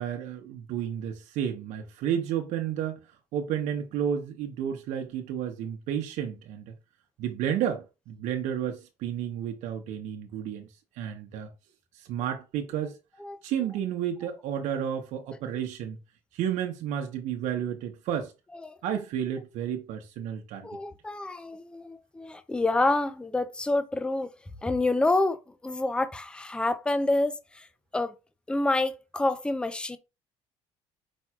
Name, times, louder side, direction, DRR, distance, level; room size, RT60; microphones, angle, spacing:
voice 1, 0.0-3.0 3.3-6.7 7.2-10.7 11.0-11.5 11.9-13.0 13.4-16.0 16.3-18.3 18.8-20.7, right 9 dB, 75° right, 0.9 m, -31 dB
voice 2, 20.6-24.3 24.6-27.7 27.9-28.1 28.5-30.0, left 2 dB, 10° left, 0.5 m, -28 dB
5.2 x 4.3 x 2.3 m
cardioid pair, 105°, 13 cm